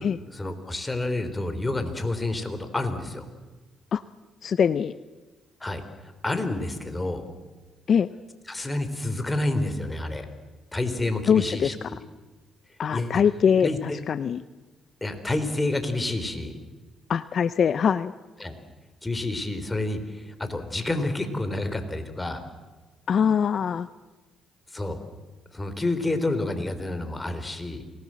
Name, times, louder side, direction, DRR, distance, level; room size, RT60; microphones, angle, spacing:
voice 1, 0.3-3.3 5.6-7.2 8.5-10.3 10.7-11.7 12.9-13.2 13.6-14.0 15.0-16.5 18.4-18.5 19.0-22.4 24.7-25.0 25.5-27.8, left 2 dB, 15° left, 8 dB, 3.8 m, -29 dB
voice 2, 4.4-4.9 7.9-8.1 11.3-11.9 12.8-14.4 17.1-18.1 23.1-23.9, left 7 dB, 55° left, 15 dB, 0.7 m, -23 dB
28.0 x 19.5 x 7.7 m, 1.3 s
supercardioid pair, 70°, 0 cm